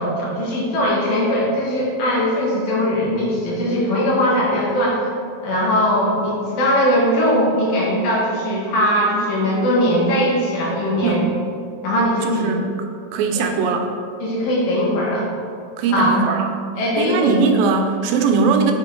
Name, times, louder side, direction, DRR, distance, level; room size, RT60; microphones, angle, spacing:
voice 1, 0.0-5.0 5.4-11.2 11.8-12.5 13.4-13.5 14.2-15.3 15.9-16.2 16.8-17.4, equal, 80° left, -4 dB, 3.3 m, -20 dB
voice 2, 12.2-12.6 13.1-13.9 15.8-16.5 17.0-18.7, right 4 dB, 90° right, 4 dB, 2.4 m, -19 dB
7.3 x 5.6 x 3.8 m, 2.2 s
omnidirectional pair, 4.0 m